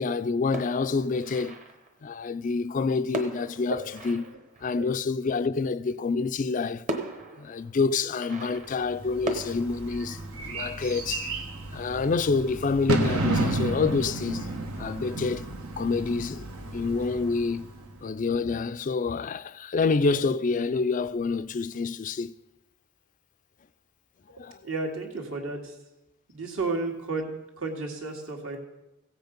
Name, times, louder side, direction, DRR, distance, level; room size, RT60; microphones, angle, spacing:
voice 1, 0.0-1.6 2.0-4.3 4.6-6.9 7.4-11.4 11.7-14.5 14.8-15.5 15.8-17.7 18.0-22.3 24.4-24.6, left 4 dB, 35° left, 0.3 m, -27 dB
sound 1, 0.5-2.0 3.1-5.1 6.3-6.4 6.9-9.5, right 2 dB, 35° right, 1.2 m, -38 dB
Bird / Fireworks, 8.9-18.1, right 2 dB, 85° right, 1.4 m, -32 dB
voice 2, 24.3-25.8 26.3-28.6, right 3 dB, 70° right, 2.1 m, -33 dB
16.0 x 7.9 x 5.2 m
head